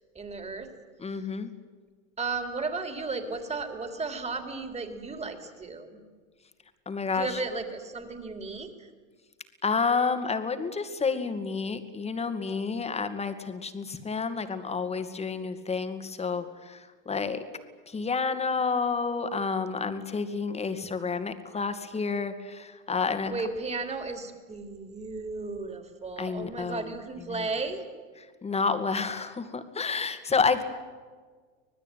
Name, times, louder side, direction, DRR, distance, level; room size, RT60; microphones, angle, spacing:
voice 1, 0.1-0.7 1.1-1.3 2.2-5.9 7.1-8.9 23.2-27.8, right 3 dB, 15° right, 7 dB, 3.5 m, -34 dB
voice 2, 1.0-1.5 6.9-7.4 9.6-17.4 17.9-23.3 26.2-26.9 27.3-27.4 28.4-30.6, left 5 dB, 15° left, 8 dB, 2.3 m, -30 dB
25.5 x 19.5 x 9.3 m, 1.5 s
supercardioid pair, 125°, 41 cm